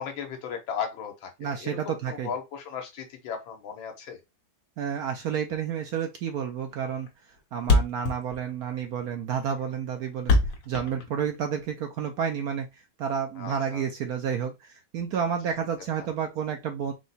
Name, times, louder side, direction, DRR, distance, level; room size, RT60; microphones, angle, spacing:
voice 1, 0.0-4.2 13.4-13.9 15.2-15.3 16.0-16.1, left 7 dB, 90° left, 1.7 m, -36 dB
voice 2, 1.4-2.3 4.8-7.1 7.5-10.4 10.7-12.7 13.0-16.9, right 7 dB, 70° right, 0.9 m, -30 dB
Thump thud, 6.3-6.5 6.7-6.8 7.1-7.2 7.4-7.5 7.6-11.7, left 2 dB, 70° left, 1.7 m, -24 dB
4.7 x 2.2 x 4.0 m
omnidirectional pair, 2.1 m